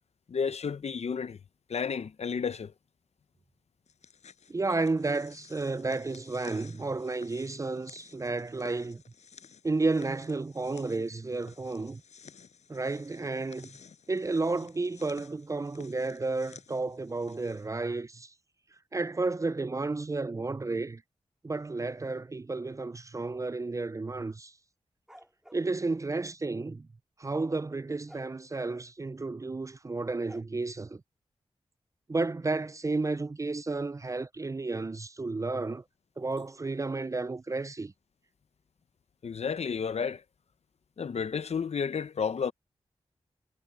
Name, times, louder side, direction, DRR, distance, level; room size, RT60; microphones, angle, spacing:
voice 1, 0.3-1.4 1.7-2.7 39.2-40.2 41.0-42.5, left 6 dB, 70° left, 0.7 m, -31 dB
sound 1, 3.9-17.7, left 6 dB, 90° left, 6.1 m, -54 dB
voice 2, 4.5-9.0 9.6-12.0 12.7-13.7 14.1-18.3 18.9-21.0 21.4-24.5 25.5-26.9 27.2-31.0 32.1-35.8 36.2-37.9, right 3 dB, 30° right, 0.4 m, -32 dB
sound 2, 25.1-25.7 28.1-28.3 30.2-30.4, equal, 5° right, 2.9 m, -52 dB
cardioid pair, 45°, 11 cm